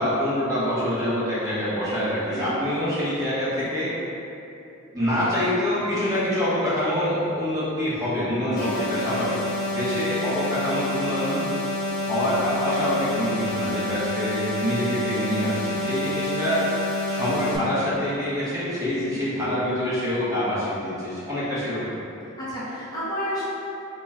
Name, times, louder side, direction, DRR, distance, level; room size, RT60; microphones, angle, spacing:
voice 1, 0.0-3.9 4.9-9.4 9.7-11.4 12.0-16.6 17.1-22.0, equal, 15° right, -11 dB, 0.8 m, -26 dB
sound 1, 8.6-17.6, left 1 dB, 75° left, 0.6 m, -28 dB
voice 2, 22.4-23.4, equal, 20° left, -11 dB, 0.8 m, -32 dB
2.9 x 2.3 x 4.2 m, 2.8 s
head